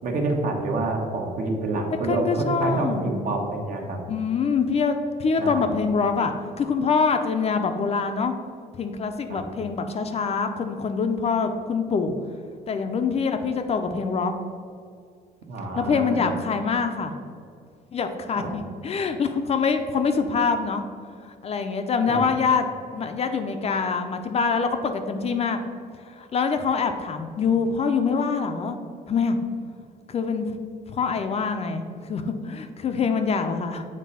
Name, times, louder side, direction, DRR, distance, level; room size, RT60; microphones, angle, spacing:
voice 1, 0.0-4.0 5.4-5.6 9.3-9.5 15.5-16.2 18.3-18.6 22.1-22.2, right 2 dB, 55° right, 1 dB, 1.2 m, -27 dB
voice 2, 1.9-3.2 4.1-8.3 8.7-12.1 12.7-14.3 15.7-17.1 17.9-20.8 21.2-22.7 22.9-25.6 26.0-28.8 29.1-29.4 30.1-30.5 30.9-33.9, left 5 dB, 40° left, 6 dB, 0.5 m, -25 dB
7.4 x 3.3 x 5.5 m, 2.2 s
cardioid pair, 110°, 17 cm